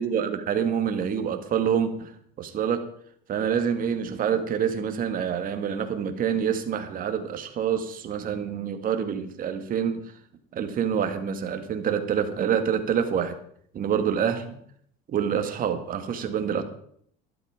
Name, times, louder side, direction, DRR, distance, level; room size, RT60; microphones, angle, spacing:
voice 1, 0.0-2.9 3.3-10.0 10.5-13.3 13.7-14.6 15.1-16.6, right 8 dB, 45° right, 7 dB, 2.1 m, -27 dB
12.0 x 12.0 x 5.1 m, 0.63 s
supercardioid pair, 110°, 21 cm